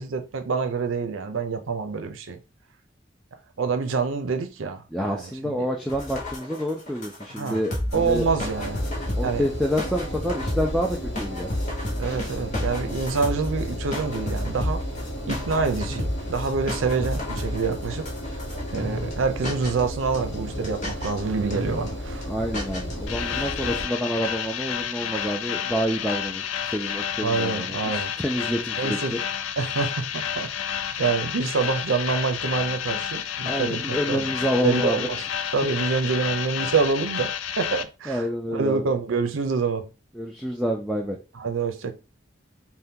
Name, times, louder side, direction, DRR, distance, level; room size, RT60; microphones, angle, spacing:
voice 1, 0.0-2.4 3.6-5.7 7.3-7.6 7.9-8.8 9.2-9.5 12.0-14.8 15.3-18.1 18.5-22.3 23.3-23.5 27.2-28.1 28.8-29.2 29.6-34.3 34.6-35.2 35.5-39.9 41.3-41.9, right 4 dB, 90° right, 0.5 m, -27 dB
voice 2, 4.9-8.3 9.2-11.5 22.3-29.2 33.5-35.1 38.1-38.8 40.2-41.2, equal, ahead, 0.3 m, -28 dB
sound 1, 5.9-19.1 19.4-19.8 20.1-21.2 21.5-21.9 22.2-22.3 22.5-23.2, left 1 dB, 40° left, 0.9 m, -32 dB
Engine, 7.9-23.8, equal, 65° left, 1.1 m, -34 dB
sound 2, 23.1-37.8, left 9 dB, 90° left, 0.4 m, -30 dB
2.7 x 2.1 x 3.5 m
head